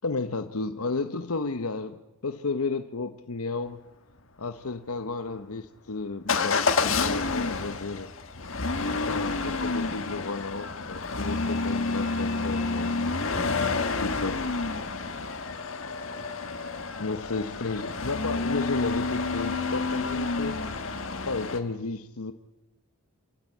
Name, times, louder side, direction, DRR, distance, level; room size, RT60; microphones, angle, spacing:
voice 1, 0.0-3.8 4.4-8.1 8.8-12.9 14.0-14.5 17.0-20.7 21.2-22.3, left 3 dB, 75° left, 0.9 m, -33 dB
Motor vehicle (road) / Engine starting / Accelerating revving vroom, 6.3-21.6, left 4 dB, 60° left, 1.6 m, -29 dB
27.0 x 17.0 x 8.5 m
head